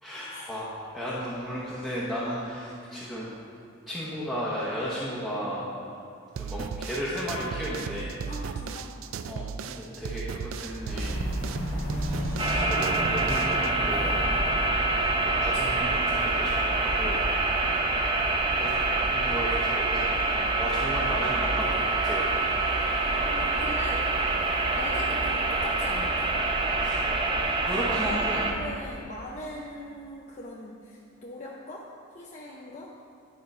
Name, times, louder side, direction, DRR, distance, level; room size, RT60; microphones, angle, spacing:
voice 1, 0.0-3.3 3.9-5.6 6.3-8.1 9.3-11.2 11.7-11.8 12.5-14.2 15.2-17.2 18.5-18.7 19.0-22.5 26.8-27.0 27.6-28.5, equal, ahead, -8 dB, 0.9 m, -34 dB
sound 1, 6.4-13.7, right 6 dB, 75° right, 0.3 m, -36 dB
voice 2, 8.3-9.0 15.5-16.1 23.2-24.1 24.8-26.3 27.7-31.9 32.1-32.9, left 1 dB, 35° left, -3 dB, 0.6 m, -41 dB
sound 2, 10.7-29.0, equal, 75° left, 1.7 m, -35 dB
sound 3, 12.4-28.5, right 3 dB, 25° right, 0.6 m, -26 dB
10.5 x 4.6 x 5.4 m, 2.6 s
head